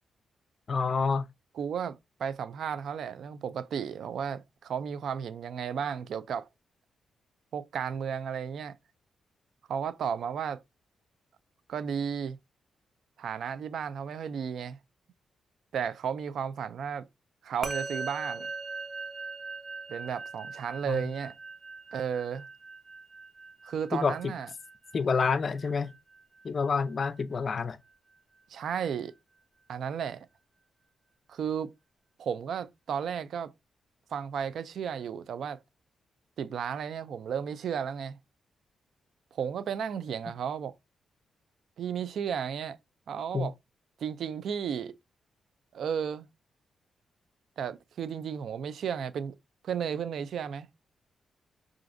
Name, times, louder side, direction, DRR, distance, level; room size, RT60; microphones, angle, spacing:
voice 1, 0.7-1.3 20.9-21.1 23.9-24.3 24.9-25.9 26.4-27.8 43.3-43.5, left 5 dB, 45° left, 0.4 m, -28 dB
voice 2, 1.6-6.5 7.5-8.8 9.7-10.6 11.7-12.4 13.2-14.8 15.7-17.1 17.4-18.5 19.9-21.3 21.9-22.5 23.6-24.5 28.5-29.1 29.7-30.3 31.3-31.7 32.2-33.5 34.1-35.6 36.4-38.2 39.3-40.7 41.8-42.8 43.1-43.5 44.0-45.0 45.7-46.3 47.6-49.3 49.6-50.7, right 7 dB, 75° right, 0.4 m, -33 dB
Musical instrument, 17.6-27.2, right 3 dB, 25° right, 0.6 m, -41 dB
5.8 x 2.4 x 2.5 m
cardioid pair, 95°, 0 cm